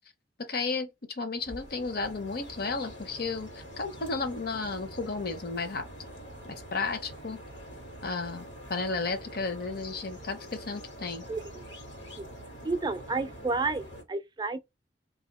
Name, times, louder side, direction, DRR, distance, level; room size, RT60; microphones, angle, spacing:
voice 1, 0.4-5.9 6.4-7.4 8.0-11.2, left 4 dB, 55° left, 0.7 m, -33 dB
sound 1, 1.4-14.0, equal, 90° left, 1.7 m, -45 dB
voice 2, 11.3-11.6 12.2-12.3 12.6-14.6, right 3 dB, 25° right, 0.4 m, -31 dB
2.8 x 2.6 x 4.1 m
head